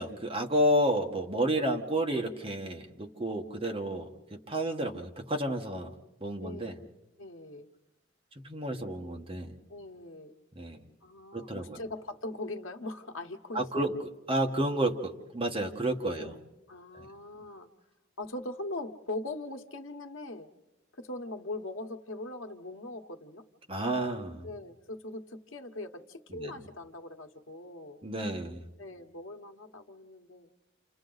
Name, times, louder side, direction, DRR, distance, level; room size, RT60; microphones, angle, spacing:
voice 1, 0.0-5.9 6.2-6.7 8.4-9.5 10.5-10.8 11.3-11.8 13.5-13.9 14.3-16.3 17.0-17.1 23.7-24.5 26.3-26.6 28.0-28.6, right 1 dB, 30° right, 2 dB, 1.4 m, -31 dB
voice 2, 6.4-6.9 7.2-7.7 9.7-10.3 11.0-14.0 16.2-16.4 16.7-17.7 18.2-20.5 20.9-23.4 24.4-28.0 28.8-30.5, left 2 dB, 80° left, 6 dB, 1.1 m, -41 dB
30.0 x 28.0 x 4.0 m, 1.0 s
head